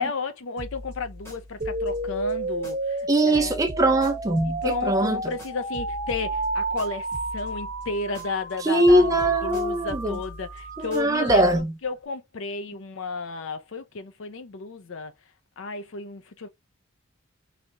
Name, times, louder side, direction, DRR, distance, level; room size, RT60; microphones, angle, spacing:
voice 1, 0.0-3.6 4.4-7.1 7.3-9.1 9.4-15.1 15.6-16.5, left 4 dB, 60° left, 0.5 m, -33 dB
sound 1, 0.6-3.1 3.3-8.6 8.8-11.6, equal, 10° left, 1.5 m, -41 dB
sound 2, 1.6-11.6, right 2 dB, 40° right, 0.9 m, -32 dB
voice 2, 3.1-5.3 8.6-10.2 10.8-11.7, right 1 dB, 15° right, 0.4 m, -21 dB
3.2 x 2.8 x 2.2 m
head